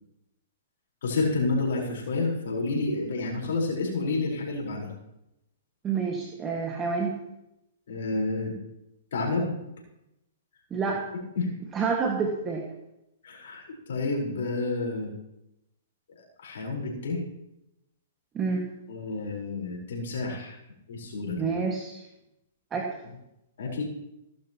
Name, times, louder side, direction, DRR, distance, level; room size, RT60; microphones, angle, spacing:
voice 1, 1.0-4.9 7.9-8.5 9.1-9.6 11.4-11.5 13.2-15.1 16.4-17.2 18.9-20.6 20.9-21.5 23.6-23.8, left 3 dB, 70° left, -1 dB, 4.5 m, -29 dB
voice 2, 5.8-7.2 10.7-11.1 11.7-12.6 18.3-18.7 21.4-22.0 22.7-23.0, right 5 dB, 20° right, 0 dB, 1.8 m, -28 dB
17.0 x 11.5 x 3.0 m, 0.88 s
hypercardioid pair, 130°, 0 cm